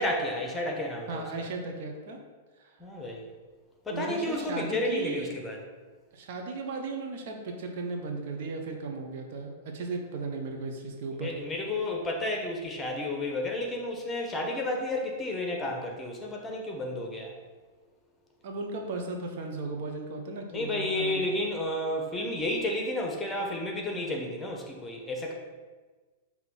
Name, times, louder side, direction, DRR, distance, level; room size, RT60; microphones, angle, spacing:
voice 1, 0.0-1.5 2.8-3.2 3.8-5.6 11.2-17.3 20.5-25.3, left 1 dB, 15° left, 1 dB, 1.2 m, -31 dB
voice 2, 1.1-2.2 2.6-2.7 3.9-5.3 6.1-11.3 18.4-21.3, right 3 dB, 55° right, 2 dB, 0.9 m, -36 dB
5.8 x 3.0 x 5.5 m, 1.3 s
figure-of-eight pair, 100°, 0 cm